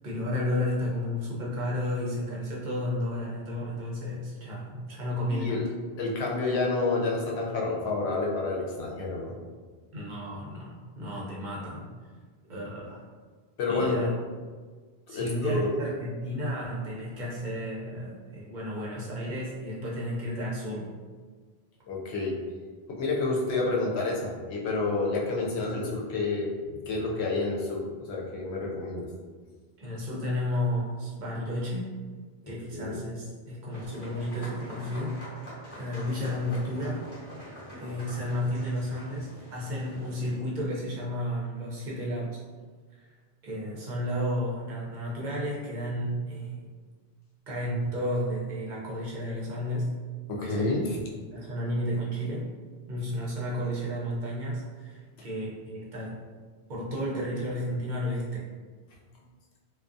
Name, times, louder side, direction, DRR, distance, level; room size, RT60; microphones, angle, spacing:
voice 1, 0.0-5.7 9.9-11.8 12.5-13.1 13.7-14.1 15.1-20.9 29.8-31.9 32.5-37.0 37.8-42.4 42.9-43.1 43.4-46.6 47.5-49.9 50.4-51.0 51.3-52.5 52.9-56.2 56.7-58.5, equal, 55° right, -5 dB, 0.7 m, -32 dB
voice 2, 5.3-5.7 6.0-9.3 13.6-14.0 15.1-15.7 21.9-22.4 22.9-26.5 26.9-27.8 28.1-29.1 32.7-32.9 50.3-51.0, left 3 dB, 90° left, -2 dB, 0.8 m, -29 dB
sound 1, 33.7-40.4, equal, 35° left, 0.9 m, -45 dB
2.3 x 2.2 x 2.5 m, 1.5 s
omnidirectional pair, 1.1 m